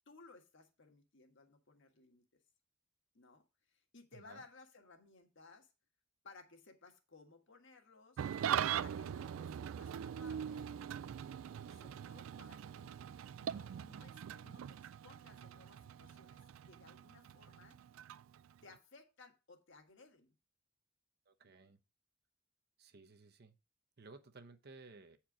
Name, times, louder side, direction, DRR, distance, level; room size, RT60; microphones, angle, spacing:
voice 1, 0.1-2.3 3.1-5.7 6.2-8.2 8.7-10.8 11.3-12.9 13.4-17.8 18.6-20.3, left 3 dB, 65° left, 1.6 m, -60 dB
voice 2, 4.1-4.4 21.3-21.8 22.8-23.5 24.0-25.2, right 3 dB, 50° right, 0.9 m, -57 dB
Engine starting / Idling, 8.2-18.8, right 9 dB, 75° right, 0.3 m, -42 dB
8.9 x 4.6 x 4.8 m
head